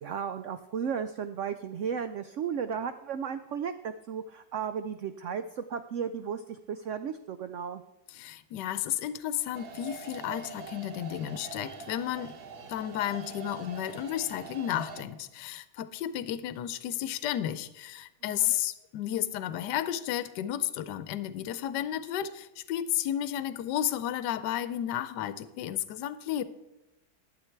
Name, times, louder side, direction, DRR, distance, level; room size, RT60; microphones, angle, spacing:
voice 1, 0.0-7.8 18.2-18.5, right 7 dB, 85° right, 10 dB, 0.6 m, -34 dB
voice 2, 8.1-12.4 12.7-26.4, left 11 dB, 80° left, 14 dB, 1.3 m, -32 dB
sound 1, 9.5-15.0, right 5 dB, 65° right, 1.6 m, -44 dB
12.0 x 8.1 x 4.5 m, 0.99 s
omnidirectional pair, 1.9 m